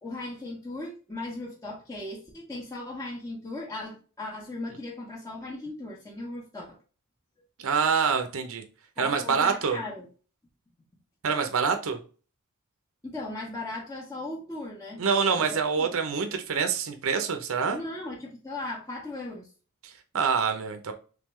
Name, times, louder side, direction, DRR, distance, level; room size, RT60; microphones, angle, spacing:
voice 1, 0.0-6.8 9.0-10.1 13.0-15.0 15.4-15.5 15.8-16.0 17.7-19.5, left 2 dB, 15° left, -4 dB, 0.9 m, -37 dB
voice 2, 7.6-8.6 9.0-9.8 11.2-12.0 15.0-17.8 19.8-20.9, right 6 dB, 65° right, 6 dB, 0.7 m, -26 dB
3.6 x 3.4 x 3.1 m, 0.37 s
head